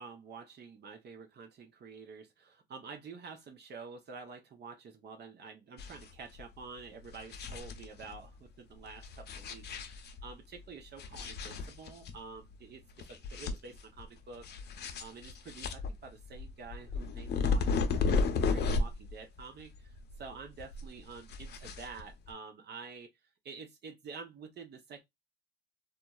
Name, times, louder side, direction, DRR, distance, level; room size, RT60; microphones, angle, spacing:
voice 1, 0.0-12.8 13.1-23.1 23.4-25.0, right 4 dB, 55° right, 0.7 m, -49 dB
sound 1, 5.8-6.1 6.4-6.5 7.0-8.2 9.0-10.3 11.0-12.1 12.5-12.6 13.0-14.0 14.4-19.1 19.4-20.3 20.6-22.3, left 4 dB, 55° left, 0.6 m, -33 dB
3.0 x 2.3 x 2.2 m
cardioid pair, 90°, 20 cm